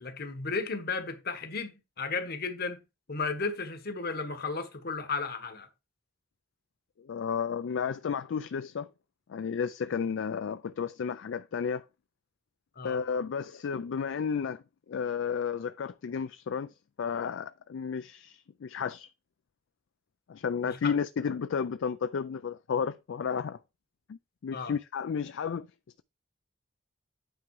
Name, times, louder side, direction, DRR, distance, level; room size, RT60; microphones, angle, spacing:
voice 1, 0.0-2.8 3.1-5.7 12.8-13.0 20.6-20.9 24.5-24.7, left 4 dB, 55° left, 1.3 m, -34 dB
voice 2, 7.0-8.9 9.3-11.8 12.8-14.6 14.9-16.7 17.0-19.1 20.3-23.6 24.1-25.7, left 6 dB, 70° left, 0.4 m, -32 dB
9.0 x 3.7 x 4.7 m
head